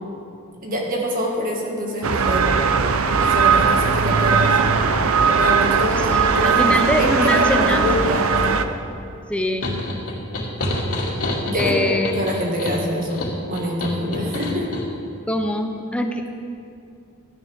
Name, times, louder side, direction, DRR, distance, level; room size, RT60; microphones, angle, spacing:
voice 1, 0.6-2.5 3.2-4.6 5.3-8.6 11.5-13.2 13.5-14.7, equal, 40° right, -1 dB, 1.9 m, -25 dB
sound 1, 2.0-8.7, right 5 dB, 70° right, 0.7 m, -18 dB
voice 2, 5.9-8.2 9.3-9.7 11.5-12.1 15.3-16.3, left 1 dB, 5° left, 4 dB, 0.7 m, -24 dB
sound 2, 9.6-14.8, left 1 dB, 90° left, 2.3 m, -27 dB
16.5 x 12.0 x 3.6 m, 2.5 s
head